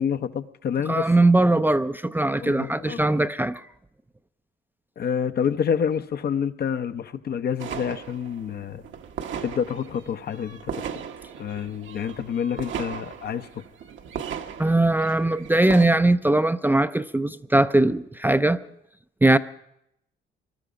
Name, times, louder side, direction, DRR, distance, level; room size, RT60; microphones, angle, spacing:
voice 1, 0.0-1.1 2.4-3.0 5.0-8.8 9.4-10.7 11.4-13.5, left 7 dB, 55° left, 0.8 m, -28 dB
voice 2, 0.9-3.7 14.6-18.6 19.2-19.4, right 2 dB, 10° right, 0.5 m, -20 dB
sound 1, 7.6-15.9, right 7 dB, 75° right, 1.2 m, -37 dB
20.0 x 12.5 x 5.1 m
cardioid pair, 90°, 20 cm